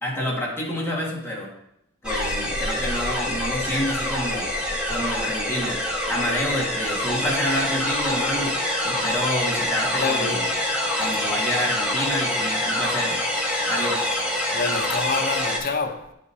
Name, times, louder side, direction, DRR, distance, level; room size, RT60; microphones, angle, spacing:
voice 1, 0.0-1.5 2.0-4.5 4.9-5.8 6.1-8.5 8.8-10.5 11.0-13.2 13.7-14.0, left 1 dB, 10° left, 1.7 m, -28 dB
sound 1, 2.0-15.6, left 1 dB, 5° right, 1.2 m, -26 dB
voice 2, 10.0-10.4 14.5-16.1, left 4 dB, 45° left, 0.8 m, -27 dB
10.5 x 5.1 x 2.7 m
head